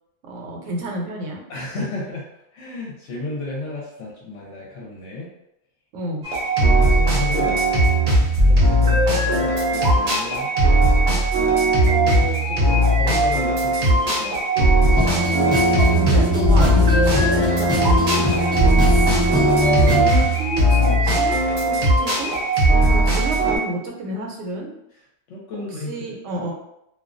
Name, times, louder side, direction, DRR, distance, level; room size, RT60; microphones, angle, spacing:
voice 1, 0.2-1.4 5.9-6.3 15.9-19.2 19.7-22.3 22.9-24.7 25.5-26.5, right 2 dB, 70° right, 0 dB, 0.9 m, -30 dB
voice 2, 1.5-2.3 2.5-5.3 6.6-7.6 8.4-10.9 11.8-14.7 25.3-26.0 26.3-26.5, left 2 dB, 70° left, -4 dB, 0.8 m, -33 dB
sound 1, 6.2-23.6, right 1 dB, 50° right, 0.7 m, -18 dB
sound 2, 14.9-20.0, left 1 dB, 5° left, 0.7 m, -21 dB
2.3 x 2.2 x 2.4 m, 0.81 s
omnidirectional pair, 1.4 m